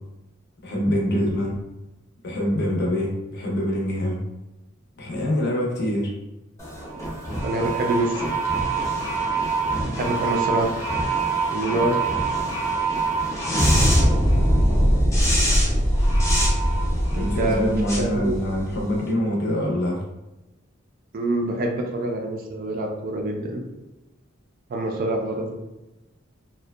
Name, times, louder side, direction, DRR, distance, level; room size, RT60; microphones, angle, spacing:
voice 1, 0.6-1.6 2.2-4.2 5.0-6.1 17.1-20.0, equal, 55° left, -2 dB, 0.6 m, -25 dB
sound 1, 6.6-19.0, right 1 dB, 15° left, 0.5 m, -22 dB
voice 2, 7.4-8.3 10.0-10.8 11.5-12.0 17.1-17.6 18.0-18.3 21.1-23.6 24.7-25.6, right 2 dB, 45° right, 1 dB, 0.3 m, -26 dB
2.6 x 2.1 x 2.2 m, 0.99 s
head